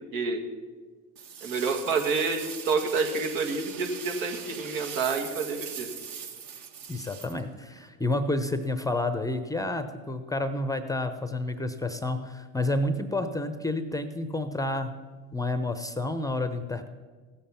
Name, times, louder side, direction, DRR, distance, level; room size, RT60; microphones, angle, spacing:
sound 1, 1.2-7.9, right 7 dB, 55° right, 1.7 m, -41 dB
voice 1, 1.4-5.9, right 4 dB, 80° right, 3 dB, 2.1 m, -28 dB
voice 2, 6.9-14.9 15.3-16.9, left 2 dB, 10° left, 9 dB, 0.6 m, -30 dB
16.0 x 7.4 x 5.8 m, 1.5 s
supercardioid pair, 95°, 41 cm